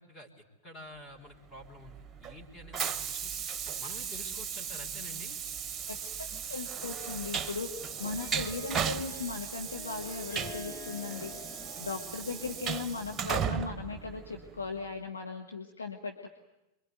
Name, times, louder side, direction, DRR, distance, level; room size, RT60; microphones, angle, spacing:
voice 1, 0.0-3.3 3.8-5.4, left 1 dB, 25° left, 2 dB, 4.1 m, -49 dB
Train, 1.6-14.8, right 7 dB, 20° right, 1.1 m, -36 dB
voice 2, 5.9-11.3 11.8-16.3, left 4 dB, 75° left, 2 dB, 1.9 m, -38 dB
Harp, 7.7-12.9, left 4 dB, 50° left, 2.5 m, -48 dB
27.0 x 23.0 x 9.5 m, 0.97 s
figure-of-eight pair, 90°, 0 cm